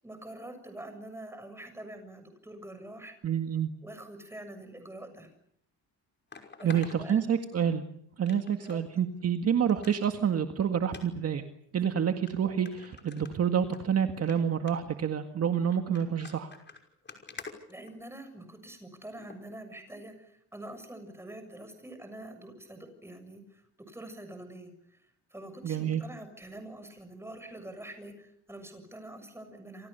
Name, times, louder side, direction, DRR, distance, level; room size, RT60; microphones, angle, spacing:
voice 1, 0.0-3.1 3.8-5.3 6.6-7.3 8.7-9.0 17.7-29.9, right 1 dB, 5° right, 8 dB, 7.1 m, -45 dB
voice 2, 3.2-3.7 6.6-7.8 8.2-11.4 11.7-16.5 25.6-26.0, right 8 dB, 40° right, 7 dB, 1.9 m, -28 dB
sound 1, 5.2-5.3 6.3-7.8 8.3-8.8 9.2-9.3 9.7-10.1 10.9-11.1 11.8-11.9 12.3-12.4 12.7-13.8 14.1-14.4 14.7-15.0 15.7-18.4 19.2-19.4 19.9-20.0, left 5 dB, 25° left, 5.7 m, -48 dB
28.0 x 28.0 x 6.9 m, 0.69 s
cardioid pair, 135°, 39 cm